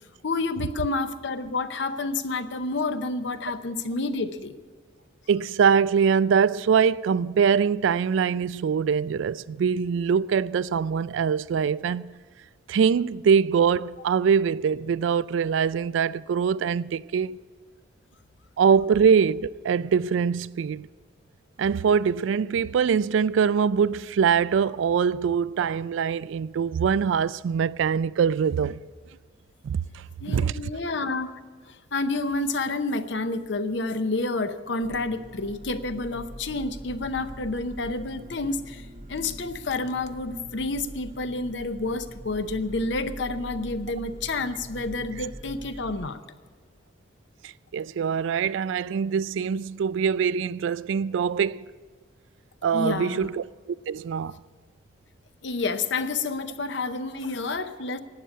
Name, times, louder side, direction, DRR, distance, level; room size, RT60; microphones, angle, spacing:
voice 1, 0.2-4.6 30.2-31.3 31.7-46.2 52.7-53.3 55.4-58.0, left 3 dB, 65° left, 0.7 m, -29 dB
voice 2, 5.3-12.1 12.7-17.4 18.6-20.9 21.6-28.8 29.6-29.8 30.3-30.5 47.7-51.6 52.6-53.4 53.9-54.4, right 6 dB, 75° right, 0.3 m, -23 dB
sound 1, 34.8-46.1, right 1 dB, 35° right, 0.8 m, -43 dB
12.5 x 8.8 x 8.4 m
head